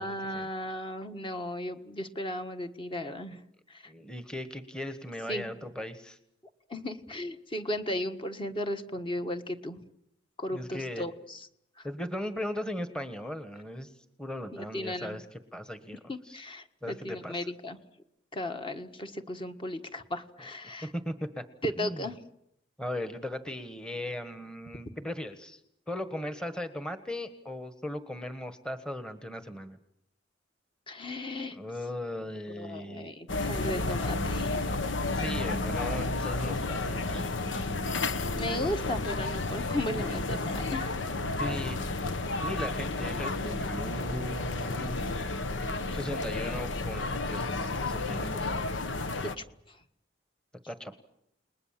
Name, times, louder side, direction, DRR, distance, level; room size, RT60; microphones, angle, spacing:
voice 1, 0.0-3.4 3.7-3.9 5.3-5.5 6.7-9.8 10.4-11.5 14.5-15.2 16.1-17.8 18.3-20.9 21.6-22.2 30.9-31.6 32.5-34.6 35.4-35.5 38.3-41.0 49.2-49.3 49.7-49.8, left 1 dB, 25° left, 7 dB, 1.5 m, -35 dB
voice 2, 3.9-6.2 10.5-11.0 11.8-13.9 14.2-16.0 16.2-16.4 16.8-17.4 20.8-21.4 21.8-22.0 22.8-25.6 25.9-29.8 31.5-33.1 35.1-37.3 41.0-41.8 42.4-45.0 45.6-48.6 49.1-49.2 50.7-50.9, left 1 dB, 5° left, 9 dB, 1.3 m, -38 dB
sound 1, 33.3-49.4, left 2 dB, 85° left, 1.2 m, -32 dB
30.0 x 20.5 x 7.5 m, 0.76 s
head